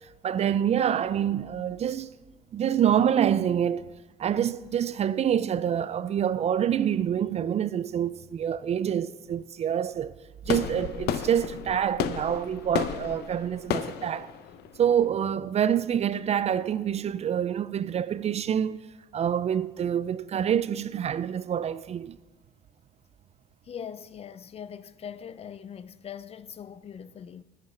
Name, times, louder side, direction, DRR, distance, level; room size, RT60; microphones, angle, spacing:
voice 1, 0.2-2.1 2.5-3.8 4.2-10.1 10.5-14.3 14.8-18.8 19.1-22.2, right 9 dB, 40° right, 0.4 m, -26 dB
sound 1, 10.4-15.4, left 9 dB, 75° left, 0.7 m, -33 dB
voice 2, 23.6-27.4, left 8 dB, 35° left, 0.5 m, -41 dB
9.5 x 8.5 x 7.0 m
cardioid pair, 110°, 17 cm